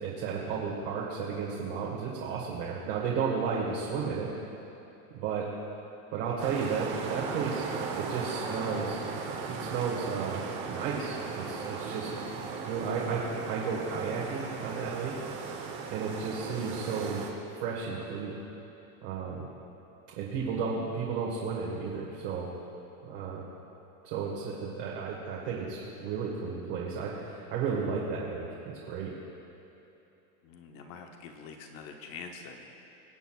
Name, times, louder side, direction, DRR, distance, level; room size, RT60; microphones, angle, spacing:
voice 1, 0.0-4.3 5.1-5.4 6.1-7.6 8.0-9.0 9.4-10.4 10.7-12.1 12.6-15.1 15.9-17.2 17.5-18.3 19.0-19.4 20.2-22.5 23.0-23.4 24.0-28.4 28.9-29.1, right 5 dB, 45° right, -5 dB, 1.6 m, -33 dB
sound 1, 6.4-17.3, right 5 dB, 25° right, 0.8 m, -37 dB
voice 2, 30.4-32.6, left 5 dB, 30° left, 4 dB, 0.8 m, -45 dB
23.5 x 8.1 x 2.3 m, 3.0 s
supercardioid pair, 170°, 44 cm